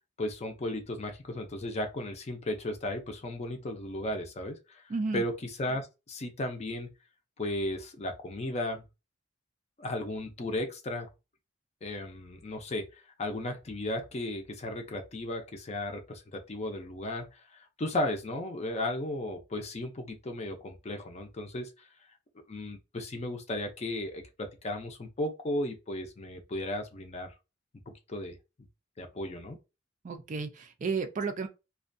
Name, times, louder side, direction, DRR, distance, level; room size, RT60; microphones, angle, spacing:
voice 1, 0.2-4.8 5.1-6.9 7.4-8.8 9.8-11.1 11.8-12.9 13.2-21.7 22.5-27.3 27.9-28.4 29.0-29.6, left 1 dB, 35° left, 0.5 m, -35 dB
voice 2, 4.9-5.2 30.0-31.5, right 4 dB, 40° right, 0.4 m, -32 dB
2.4 x 2.2 x 2.5 m
head